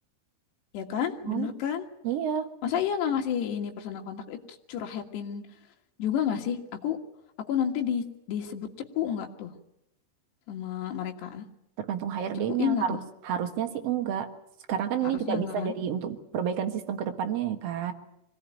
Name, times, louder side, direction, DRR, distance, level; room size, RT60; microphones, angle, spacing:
voice 1, 0.7-1.9 2.6-4.4 4.7-5.4 6.0-7.0 7.5-8.7 9.0-9.5 10.5-11.5 12.5-13.0 15.0-15.7, left 9 dB, 80° left, 2 dB, 3.9 m, -30 dB
voice 2, 2.0-2.5 11.8-13.0 13.2-14.3 14.7-17.9, right 9 dB, 55° right, 5 dB, 1.8 m, -29 dB
24.0 x 17.5 x 9.2 m, 0.83 s
omnidirectional pair, 4.8 m